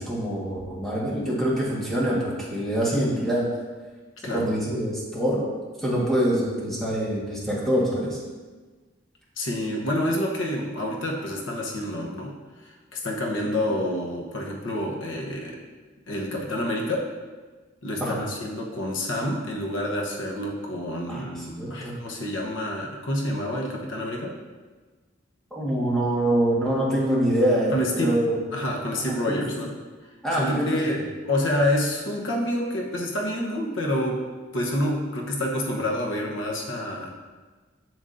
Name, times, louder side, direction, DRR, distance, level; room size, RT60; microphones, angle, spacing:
voice 1, 0.0-3.4 4.3-5.4 5.8-8.2 18.0-18.2 21.1-21.9 25.5-28.4 29.1-29.4 30.2-31.0, right 1 dB, ahead, -6 dB, 1.5 m, -25 dB
voice 2, 9.4-12.3 12.6-15.6 16.1-17.1 17.8-24.3 27.7-28.2 28.5-29.7 30.3-34.2 34.5-37.1, left 1 dB, 85° left, -1 dB, 1.0 m, -28 dB
7.2 x 7.0 x 2.6 m, 1.3 s
head